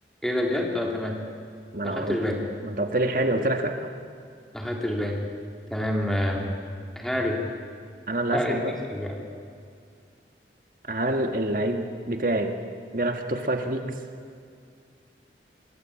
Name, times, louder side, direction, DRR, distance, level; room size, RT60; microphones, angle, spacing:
voice 1, 0.2-1.2 1.8-2.4 4.5-5.2 5.7-6.5 7.0-7.4 8.3-8.6 8.9-9.2, left 1 dB, ahead, 0 dB, 3.5 m, -27 dB
voice 2, 1.7-2.2 2.6-3.7 8.1-8.7 10.9-12.5 12.9-14.0, right 1 dB, 50° right, 5 dB, 1.7 m, -26 dB
24.5 x 23.0 x 8.7 m, 2.3 s
head